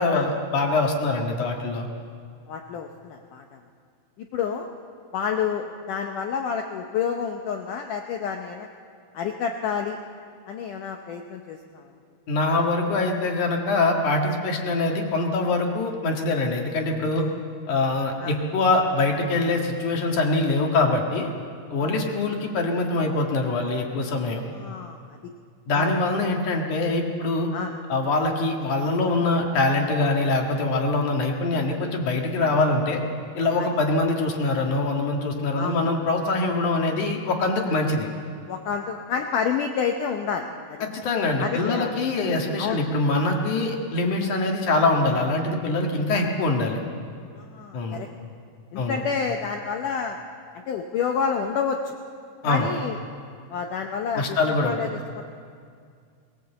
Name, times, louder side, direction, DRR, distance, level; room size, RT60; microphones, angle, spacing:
voice 1, 0.0-1.9 12.3-17.3 17.7-21.3 21.7-24.4 25.7-27.5 27.9-33.0 33.3-38.1 40.8-46.8 47.7-48.0 48.8-49.0 52.4-52.7 54.1-54.8, left 2 dB, 55° left, 1 dB, 2.8 m, -24 dB
voice 2, 2.5-3.6 4.2-4.7 5.1-8.7 9.1-10.0 10.5-11.9 18.2-18.4 21.8-21.9 24.5-25.3 25.7-25.9 27.5-27.7 33.6-33.7 35.6-35.8 38.5-40.9 41.4-41.9 42.6-42.8 46.2-46.3 47.4-48.1 48.7-50.2 50.7-52.0 52.4-53.0 53.5-54.4 54.6-54.9 55.2-55.3, left 6 dB, 90° left, 4 dB, 1.8 m, -29 dB
21.5 x 17.5 x 8.0 m, 2.2 s
omnidirectional pair, 5.0 m